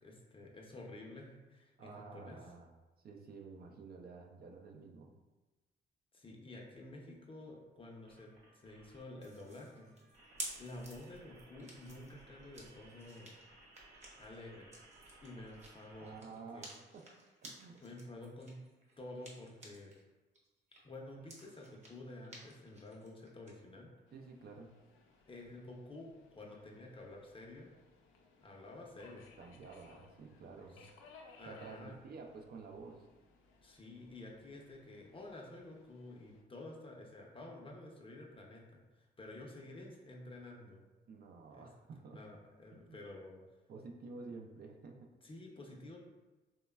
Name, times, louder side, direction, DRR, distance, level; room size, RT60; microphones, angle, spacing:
voice 1, 0.0-2.4 6.1-9.9 10.6-13.3 14.2-14.7 15.2-16.7 17.8-18.6 19.0-19.9 20.8-23.9 25.3-27.7 28.4-29.3 30.7-30.8 31.4-32.0 33.6-40.8 41.5-41.7 42.1-43.4 45.2-46.0, left 2 dB, 25° left, -1 dB, 0.6 m, -51 dB
voice 2, 1.8-2.7 3.0-5.1 16.0-17.1 17.4-17.8 24.1-24.7 29.4-30.9 31.5-33.0 41.1-42.2 42.7-43.0 43.7-45.1, right 4 dB, 50° right, 2 dB, 0.4 m, -51 dB
sound 1, 8.0-16.2, right 1 dB, 85° right, 0.8 m, -61 dB
sound 2, 9.2-20.0 20.3-23.5, right 1 dB, 35° right, 0.8 m, -53 dB
Subway metro underground, 24.1-36.4, left 4 dB, 85° left, 0.4 m, -63 dB
3.0 x 2.2 x 2.2 m, 1.2 s
cardioid pair, 75°, 20 cm